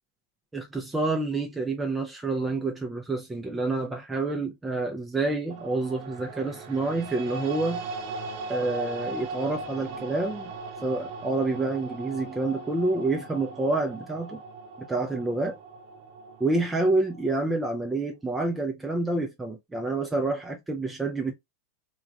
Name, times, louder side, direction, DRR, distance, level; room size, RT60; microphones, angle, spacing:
voice 1, 0.5-7.8 8.5-10.5 10.8-14.4 14.8-15.6 16.4-21.3, right 2 dB, 10° right, 0.5 m, -28 dB
sound 1, 5.5-17.7, right 3 dB, 45° right, 0.7 m, -39 dB
3.4 x 2.4 x 3.1 m
figure-of-eight pair, 90°, 0 cm